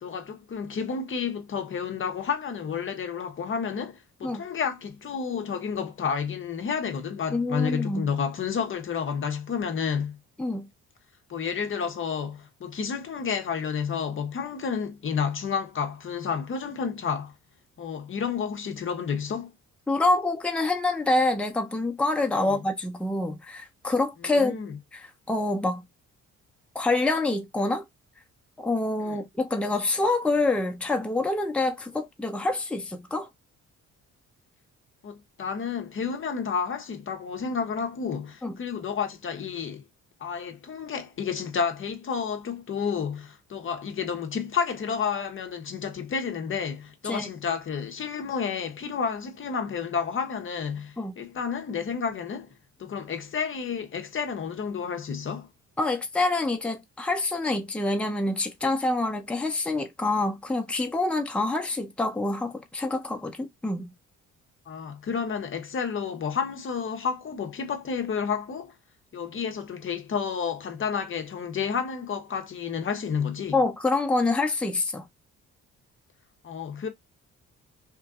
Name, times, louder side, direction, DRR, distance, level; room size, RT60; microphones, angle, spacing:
voice 1, 0.0-10.2 11.3-17.3 17.8-19.5 22.4-22.6 24.2-24.8 29.0-29.2 35.0-39.8 40.2-52.5 52.8-55.5 64.7-68.7 69.1-73.6 76.4-76.9, left 6 dB, 45° left, 0.7 m, -30 dB
voice 2, 7.3-8.1 10.4-10.7 19.9-24.5 24.9-25.0 25.3-25.8 26.7-27.8 28.6-33.3 38.4-38.5 47.1-47.3 51.0-51.1 55.8-63.9 73.5-75.0, left 2 dB, 5° left, 0.6 m, -26 dB
2.9 x 2.5 x 2.3 m
cardioid pair, 90°, 30 cm